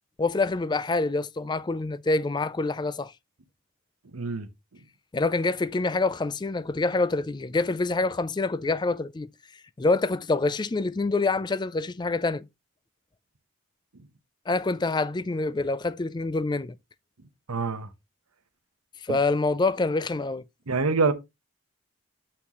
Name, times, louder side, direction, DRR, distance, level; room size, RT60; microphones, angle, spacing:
voice 1, 0.2-3.1 5.1-9.3 9.8-12.5 14.5-16.7 19.0-20.4, left 3 dB, 20° left, 0.3 m, -26 dB
voice 2, 4.1-4.5 17.5-17.9 19.1-19.2 20.7-21.1, right 4 dB, 85° right, 1.0 m, -25 dB
7.9 x 5.9 x 3.0 m
head